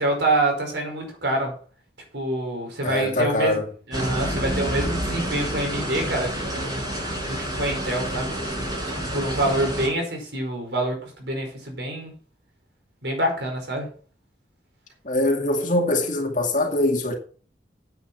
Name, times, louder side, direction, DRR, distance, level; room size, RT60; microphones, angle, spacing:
voice 1, 0.0-1.5 2.1-3.6 3.9-6.8 7.3-8.3 9.1-12.1 13.0-13.9, right 1 dB, 65° right, 5.1 m, -26 dB
voice 2, 2.8-3.7 15.0-17.1, left 1 dB, 45° left, 2.3 m, -23 dB
sound 1, 3.9-9.9, right 1 dB, 20° right, 6.4 m, -29 dB
9.9 x 8.3 x 5.9 m
head